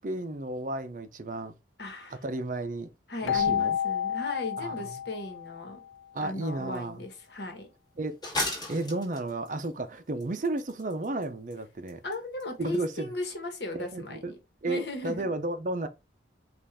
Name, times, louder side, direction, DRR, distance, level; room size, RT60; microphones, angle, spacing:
voice 1, 0.0-1.5 2.1-2.9 3.2-3.8 4.6-5.0 6.1-7.0 8.0-8.2 8.7-12.0 12.6-13.1 13.7-14.3 14.6-15.9, right 2 dB, 45° right, 0.5 m, -33 dB
voice 2, 1.8-2.2 3.1-5.8 6.2-7.7 12.0-14.4 14.7-15.3, left 2 dB, 60° left, 1.3 m, -37 dB
Keyboard (musical), 3.3-5.9, left 9 dB, 85° left, 0.3 m, -30 dB
sound 1, 6.7-6.8 7.2-7.3 8.2-9.7 10.2-11.2 11.5-11.6 11.9-12.1 12.4-12.5 12.7-12.8, left 2 dB, 20° left, 1.8 m, -34 dB
5.3 x 2.5 x 3.5 m
head